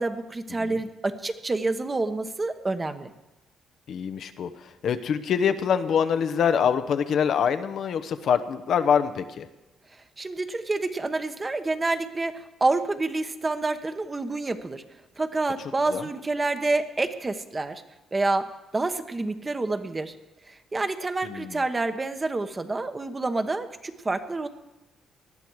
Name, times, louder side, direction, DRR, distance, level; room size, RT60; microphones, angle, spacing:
voice 1, 0.0-3.1 10.2-14.8 15.2-17.8 18.1-18.5 18.7-20.1 20.5-24.5, right 2 dB, 25° right, 8 dB, 1.2 m, -28 dB
voice 2, 3.9-9.5 15.9-16.0 21.2-21.6, left 7 dB, 65° left, 10 dB, 1.0 m, -25 dB
19.0 x 12.0 x 4.8 m, 1.0 s
cardioid pair, 90°, 0 cm